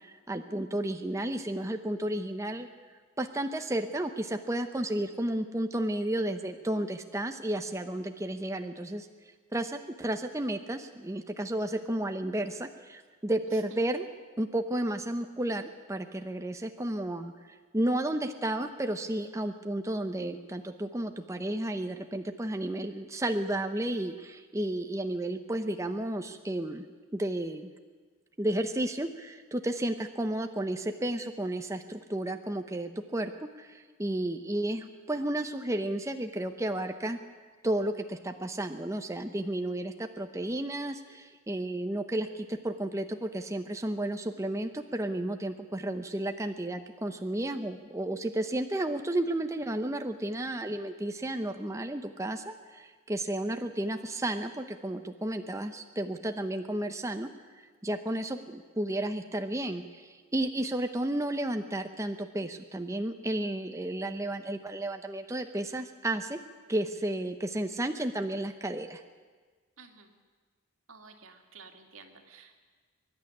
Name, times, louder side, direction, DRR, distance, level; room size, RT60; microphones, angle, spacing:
voice 1, 0.0-2.7 3.2-9.1 9.5-14.1 14.4-26.8 27.1-27.7 28.4-37.2 37.6-57.3 57.6-66.4 66.7-69.0, right 1 dB, 15° right, 7 dB, 0.7 m, -32 dB
voice 2, 13.5-13.9 58.1-58.2 69.8-70.1 70.9-72.6, right 4 dB, 80° right, 4 dB, 2.4 m, -52 dB
24.0 x 11.0 x 9.9 m, 1.5 s
head